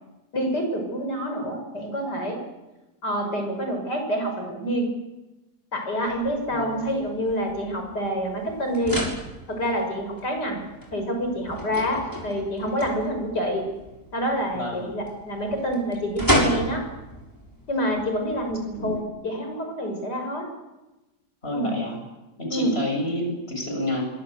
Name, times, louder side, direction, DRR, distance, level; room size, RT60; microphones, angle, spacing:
voice 1, 0.3-2.4 3.0-4.9 5.7-9.0 9.5-10.6 10.9-13.7 14.1-16.8 17.7-20.5 21.5-21.7 22.5-22.7, equal, 70° left, 4 dB, 7.1 m, -27 dB
sound 1, 6.1-19.0, equal, 10° left, 6.7 m, -33 dB
voice 2, 21.4-22.0 22.4-24.0, left 1 dB, 35° left, 2 dB, 7.7 m, -29 dB
25.5 x 23.0 x 8.2 m, 1.1 s
omnidirectional pair, 1.9 m